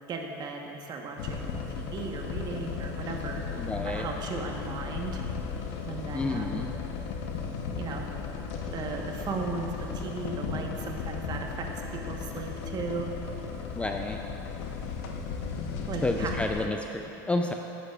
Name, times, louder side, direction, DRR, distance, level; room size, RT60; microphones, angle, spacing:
voice 1, 0.1-3.4 3.8-5.2 5.9-6.6 7.8-8.1 8.7-13.1 15.9-16.4, right 4 dB, 40° right, 2 dB, 1.2 m, -36 dB
sound 1, 1.2-16.7, left 5 dB, 65° left, 0.9 m, -35 dB
voice 2, 3.6-4.1 6.1-6.7 13.8-14.2 16.0-17.5, left 2 dB, 10° left, 3 dB, 0.4 m, -30 dB
13.5 x 9.8 x 2.4 m, 2.9 s
supercardioid pair, 105°, 11 cm